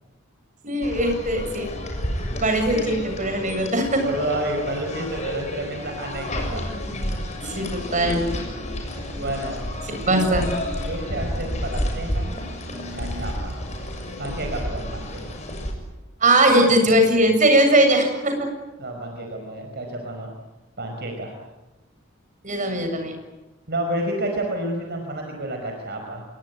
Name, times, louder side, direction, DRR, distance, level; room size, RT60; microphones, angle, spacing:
voice 1, 0.6-1.7 2.4-4.1 7.4-8.4 10.1-10.4 12.7-13.2 16.2-18.5 22.4-23.1, right 1 dB, 40° right, 6 dB, 7.4 m, -20 dB
sound 1, 0.8-15.7, left 1 dB, 35° left, 7.0 m, -30 dB
voice 2, 4.0-6.7 9.2-9.6 10.0-10.2 10.8-12.3 12.9-13.6 14.2-15.4 18.8-20.3 20.8-21.3 23.7-26.2, right 1 dB, 55° right, 2 dB, 5.2 m, -30 dB
28.0 x 23.0 x 9.4 m, 1.1 s
head